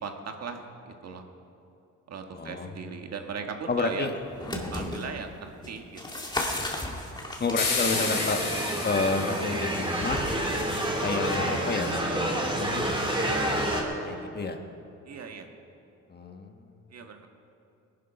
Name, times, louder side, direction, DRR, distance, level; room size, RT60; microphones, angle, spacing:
voice 1, 0.0-0.6 0.9-1.2 2.1-4.1 4.7-6.0 15.1-15.5 16.9-17.2, right 5 dB, 55° right, 4 dB, 1.6 m, -37 dB
voice 2, 2.3-2.9 3.7-4.1 4.8-5.1 7.4-8.4 8.8-10.2 11.0-12.0 12.4-14.6 16.1-16.6, left 4 dB, 35° left, 6 dB, 1.3 m, -31 dB
sound 1, 4.2-5.1 5.6-8.6 9.9-11.7 13.0-13.1, left 1 dB, 15° left, 2.2 m, -35 dB
sound 2, 7.6-10.0, left 4 dB, 90° left, 4.1 m, -31 dB
sound 3, 7.9-13.8, right 1 dB, 15° right, 2.8 m, -29 dB
18.0 x 11.0 x 5.9 m, 2.7 s
cardioid pair, 90°, 30 cm